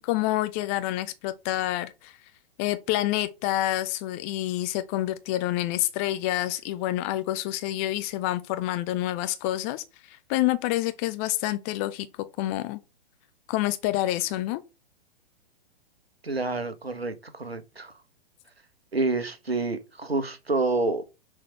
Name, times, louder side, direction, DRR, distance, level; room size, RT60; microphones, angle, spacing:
voice 1, 0.0-2.2 2.6-12.1 12.4-12.8 13.5-14.6, left 15 dB, 15° left, 0.3 m, -28 dB
voice 2, 16.2-17.9 18.9-21.0, right 3 dB, 90° right, 1.2 m, -28 dB
6.1 x 4.8 x 5.5 m
figure-of-eight pair, 110°, 30 cm